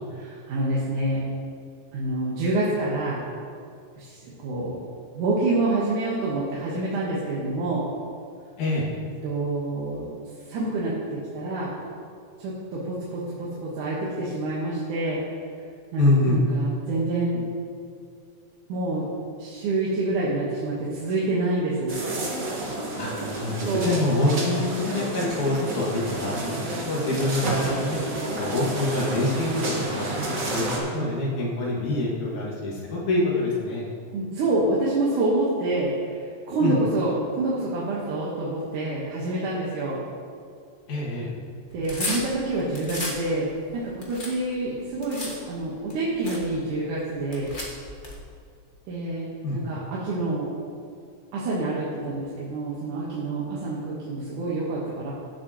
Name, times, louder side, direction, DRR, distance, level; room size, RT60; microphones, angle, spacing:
voice 1, 0.1-1.2 1.9-3.2 4.0-4.8 5.1-7.8 9.2-10.1 10.5-11.7 12.4-15.2 15.9-16.0 16.3-17.4 18.7-19.1 19.4-22.0 23.7-24.0 28.5-28.7 30.9-31.1 34.1-35.9 36.5-40.0 41.7-47.5 48.9-50.5 51.3-55.1, right 2 dB, 90° right, -6 dB, 2.8 m, -27 dB
voice 2, 16.0-16.4 23.0-28.0 28.4-33.9 36.6-36.8 40.9-41.3 49.4-49.6, left 2 dB, 75° left, -5 dB, 3.5 m, -25 dB
sound 1, 21.9-30.8, right 2 dB, 40° right, 1.2 m, -30 dB
sound 2, 41.7-43.2 43.7-45.4 45.9-46.0 46.2-46.4 47.2-48.2, left 2 dB, 45° left, 0.6 m, -33 dB
17.0 x 7.5 x 3.0 m, 2.3 s
omnidirectional pair, 3.5 m